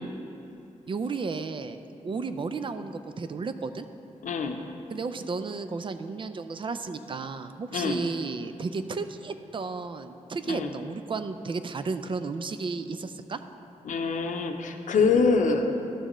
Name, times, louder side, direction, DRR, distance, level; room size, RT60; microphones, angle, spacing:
voice 1, 0.9-3.9 4.9-13.4, right 4 dB, 40° right, 10 dB, 0.4 m, -33 dB
voice 2, 4.2-4.6 7.7-8.0 10.5-10.7 13.9-15.9, left 4 dB, 75° left, 5 dB, 0.6 m, -25 dB
12.5 x 6.5 x 3.0 m, 2.7 s
cardioid pair, 90°, 13 cm